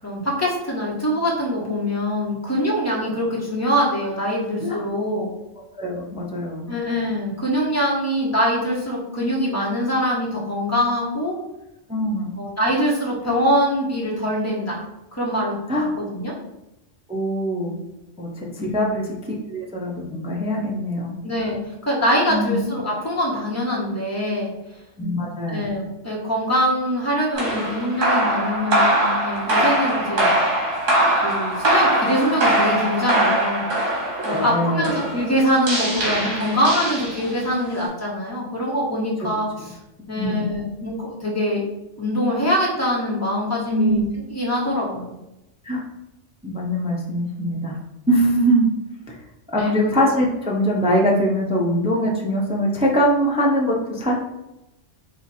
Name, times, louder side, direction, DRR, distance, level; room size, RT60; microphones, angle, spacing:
voice 1, 0.0-5.3 6.7-11.3 12.4-14.8 15.1-15.5 16.0-16.3 18.6-18.9 21.2-21.6 21.9-24.5 25.5-30.3 31.2-33.6 34.2-39.8 40.1-41.6 42.0-44.0 44.3-45.1 49.6-49.8, equal, 15° left, -5 dB, 1.1 m, -23 dB
voice 2, 5.8-6.7 11.9-12.3 15.7-15.9 17.1-17.8 18.2-21.2 22.3-22.6 25.0-25.6 34.3-34.9 40.1-40.5 43.7-44.0 45.6-45.8 46.4-47.8 48.1-48.7 49.1-49.2 49.5-54.1, equal, 10° right, -2 dB, 0.3 m, -22 dB
sound 1, 27.3-37.5, right 1 dB, 85° right, 1.5 m, -22 dB
4.3 x 2.5 x 4.1 m, 0.92 s
omnidirectional pair, 1.3 m